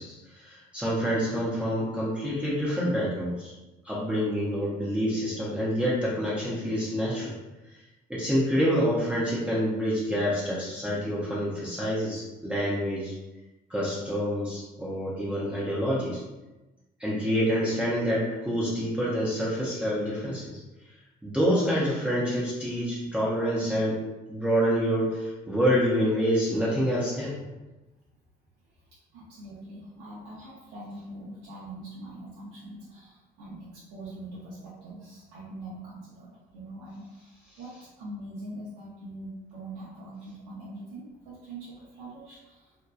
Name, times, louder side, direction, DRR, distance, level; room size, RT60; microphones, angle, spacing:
voice 1, 0.0-3.5 3.8-7.4 8.1-13.1 13.7-16.2 17.0-20.6 21.2-24.0 24.3-27.4, equal, 5° right, -7 dB, 0.5 m, -27 dB
voice 2, 29.1-42.9, right 1 dB, 90° right, -8 dB, 0.6 m, -43 dB
2.6 x 2.2 x 2.3 m, 1.1 s
cardioid pair, 110°, 17 cm